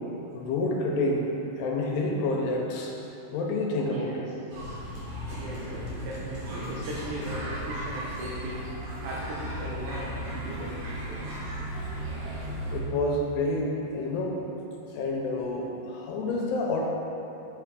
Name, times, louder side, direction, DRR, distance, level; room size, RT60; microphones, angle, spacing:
voice 1, 0.3-2.9 3.3-4.3 12.7-14.4 14.9-16.9, left 2 dB, 85° left, -1 dB, 2.6 m, -28 dB
voice 2, 3.9-4.2 5.3-8.6 9.0-11.3, right 1 dB, 85° right, -6 dB, 2.9 m, -38 dB
sound 1, 4.5-12.8, equal, 65° right, 2.4 m, -36 dB
6.4 x 5.6 x 3.7 m, 3.0 s
omnidirectional pair, 4.9 m